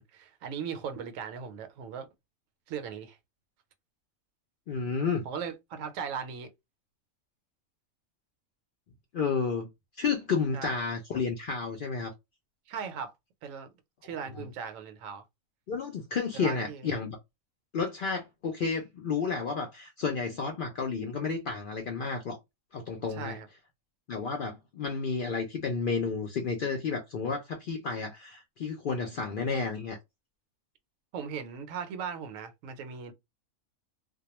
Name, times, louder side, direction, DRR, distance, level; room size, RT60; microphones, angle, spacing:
voice 1, 0.0-2.1 2.7-3.2 5.3-6.5 10.5-10.8 12.7-13.1 13.4-13.7 14.0-15.2 16.3-16.9 23.1-23.5 31.1-33.1, right 7 dB, 75° right, 0.9 m, -38 dB
voice 2, 4.7-5.3 9.1-9.7 10.0-12.1 14.3-14.5 15.7-17.2 17.7-22.4 22.7-23.4 24.1-30.0, left 5 dB, 75° left, 0.4 m, -31 dB
2.2 x 2.2 x 2.9 m
omnidirectional pair, 1.4 m